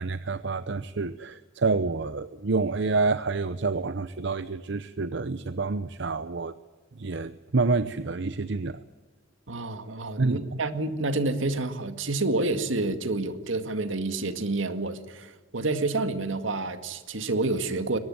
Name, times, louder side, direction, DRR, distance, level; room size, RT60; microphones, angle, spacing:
voice 1, 0.0-6.5 7.0-8.8 10.2-10.4, right 3 dB, 65° right, 13 dB, 0.8 m, -28 dB
voice 2, 9.5-18.0, right 2 dB, 80° right, 10 dB, 2.0 m, -28 dB
22.5 x 19.0 x 9.7 m, 1.3 s
head